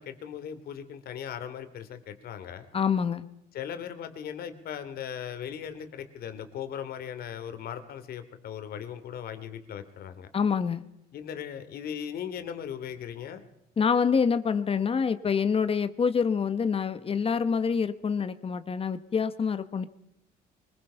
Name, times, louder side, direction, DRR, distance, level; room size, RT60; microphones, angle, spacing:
voice 1, 0.0-2.7 3.5-10.3 11.1-13.4, left 8 dB, 65° left, 10 dB, 2.8 m, -38 dB
voice 2, 2.7-3.2 10.3-10.8 13.8-19.9, left 6 dB, 35° left, 12 dB, 1.3 m, -26 dB
24.0 x 21.5 x 5.7 m, 0.83 s
cardioid pair, 110°, 17 cm